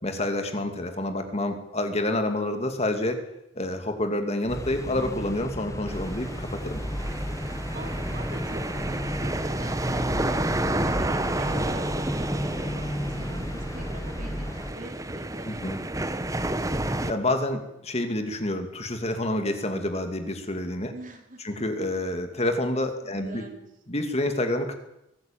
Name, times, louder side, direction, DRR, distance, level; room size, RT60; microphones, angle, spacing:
voice 1, 0.0-3.2 3.5-6.8 15.4-15.8 17.1-20.9 21.4-23.5 23.9-24.7, left 1 dB, 35° left, 7 dB, 2.5 m, -28 dB
sound 1, 4.5-14.7, equal, 15° left, 1.6 m, -33 dB
sound 2, 5.9-17.1, right 1 dB, 15° right, 1.2 m, -30 dB
voice 2, 7.7-16.0 20.9-21.6 23.0-23.7, right 1 dB, 45° right, 5 dB, 3.8 m, -44 dB
23.0 x 14.0 x 9.3 m, 0.84 s
head